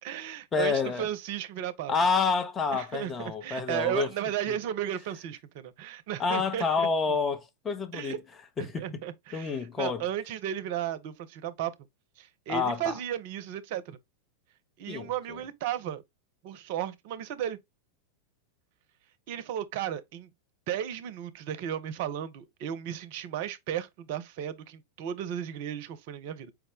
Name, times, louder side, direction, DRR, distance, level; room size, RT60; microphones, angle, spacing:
voice 1, 0.0-1.9 2.7-6.9 7.9-8.2 8.6-11.7 12.2-14.0 14.8-16.0 16.4-17.6 19.3-20.3 20.7-26.5, right 10 dB, 50° right, 0.5 m, -34 dB
voice 2, 0.5-1.1 1.9-4.1 4.5-4.6 6.2-8.2 8.6-9.0 9.3-10.0 12.5-13.0 14.9-15.4, left 5 dB, 20° left, 0.6 m, -29 dB
4.6 x 2.1 x 3.6 m
figure-of-eight pair, 90°, 0 cm